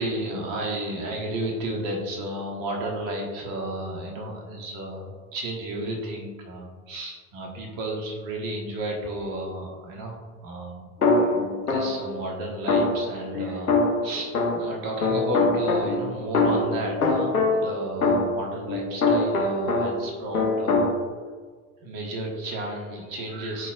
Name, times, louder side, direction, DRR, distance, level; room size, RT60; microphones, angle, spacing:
voice 1, 0.0-10.9 11.2-13.8 14.0-20.9 21.8-23.7, right 1 dB, 50° right, 0 dB, 1.6 m, -32 dB
sound 1, 11.0-12.1 12.7-14.8 15.0-20.1 20.3-20.9, left 3 dB, 90° left, 0.8 m, -23 dB
10.5 x 4.1 x 2.4 m, 1.5 s
figure-of-eight pair, 65°, 44 cm